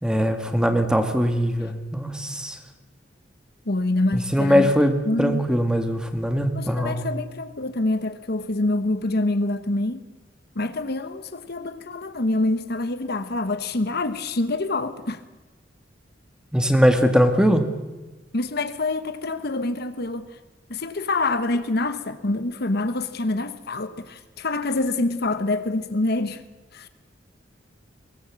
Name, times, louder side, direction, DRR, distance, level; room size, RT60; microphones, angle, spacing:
voice 1, 0.0-2.6 4.1-7.1 16.5-17.7, equal, 5° right, 1.9 m, -21 dB
voice 2, 3.6-4.7 5.0-5.4 6.5-10.0 10.5-15.2 18.3-20.3 20.7-26.4 26.7-26.9, left 2 dB, 60° left, 1.2 m, -26 dB
22.5 x 18.5 x 7.6 m
head